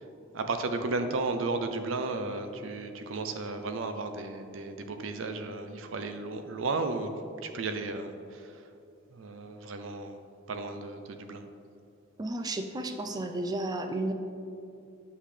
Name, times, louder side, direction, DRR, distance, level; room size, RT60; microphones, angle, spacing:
voice 1, 0.3-7.1 7.4-8.6 9.1-10.2 10.5-11.4, right 3 dB, 85° right, 8 dB, 0.5 m, -34 dB
voice 2, 12.2-14.1, right 2 dB, 20° right, 6 dB, 0.3 m, -32 dB
8.2 x 5.5 x 3.3 m, 2.5 s
head